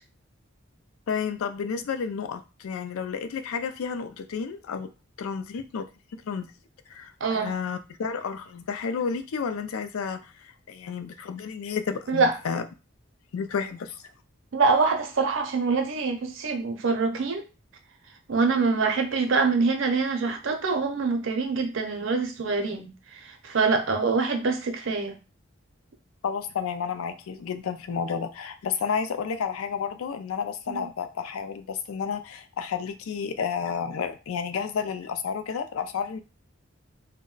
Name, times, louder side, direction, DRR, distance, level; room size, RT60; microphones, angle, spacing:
voice 1, 1.1-4.9 5.2-5.9 6.2-6.5 6.9-12.6 13.3-14.0 26.2-36.2, left 6 dB, 85° left, 9 dB, 0.4 m, -31 dB
voice 2, 7.2-7.5 12.1-12.3 14.5-17.4 18.3-25.1 30.7-30.8, right 4 dB, 65° right, 5 dB, 0.6 m, -25 dB
2.2 x 2.1 x 3.8 m, 0.30 s
head